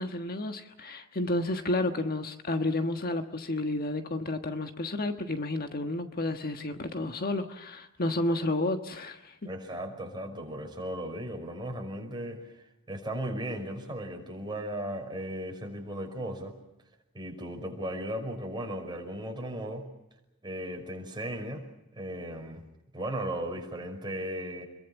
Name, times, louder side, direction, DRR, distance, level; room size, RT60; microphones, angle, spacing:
voice 1, 0.0-9.3, left 2 dB, 45° left, 6 dB, 1.4 m, -31 dB
voice 2, 9.4-12.6 12.9-16.6 17.1-19.9 20.4-21.6 21.9-22.6 22.9-24.7, right 1 dB, 20° right, 2 dB, 5.6 m, -36 dB
28.5 x 22.5 x 7.2 m, 0.92 s
head